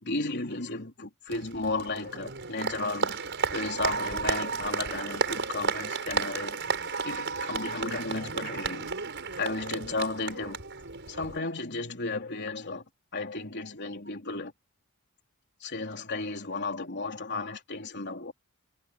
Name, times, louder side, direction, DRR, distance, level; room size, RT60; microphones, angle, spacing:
voice 1, 0.0-3.2 3.5-6.6 7.0-8.9 9.4-10.6 11.1-12.8 13.1-14.5 15.6-18.3, left 3 dB, 50° left, 3.6 m, -34 dB
Applause, 1.3-11.4, right 5 dB, 55° right, 6.1 m, -33 dB
head